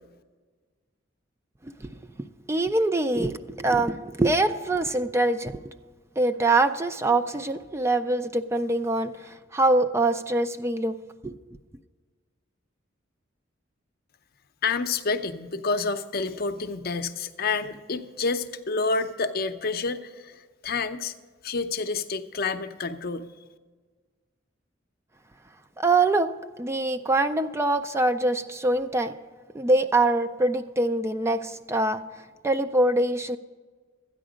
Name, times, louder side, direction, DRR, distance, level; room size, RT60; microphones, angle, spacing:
voice 1, 2.2-5.7 6.2-10.9 11.2-11.4 25.8-26.3 26.6-29.1 29.5-32.0 32.4-33.4, right 2 dB, 15° right, 9 dB, 0.3 m, -24 dB
voice 2, 14.6-20.4 20.6-21.1 21.4-23.3, left 4 dB, 55° left, 8 dB, 0.6 m, -28 dB
13.0 x 9.7 x 5.0 m, 1.4 s
head